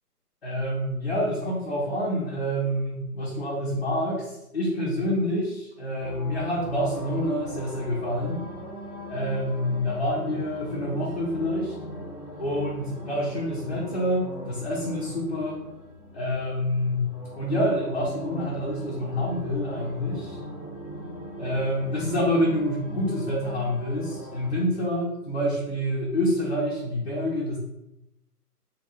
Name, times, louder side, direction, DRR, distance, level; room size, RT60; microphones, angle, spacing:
voice 1, 0.4-8.5 9.1-11.7 12.4-15.6 16.1-20.4 21.4-27.6, equal, 40° left, -7 dB, 0.8 m, -27 dB
sound 1, 6.0-24.5, equal, 15° left, 1.0 m, -40 dB
2.9 x 2.7 x 3.0 m, 0.87 s
figure-of-eight pair, 160°, 47 cm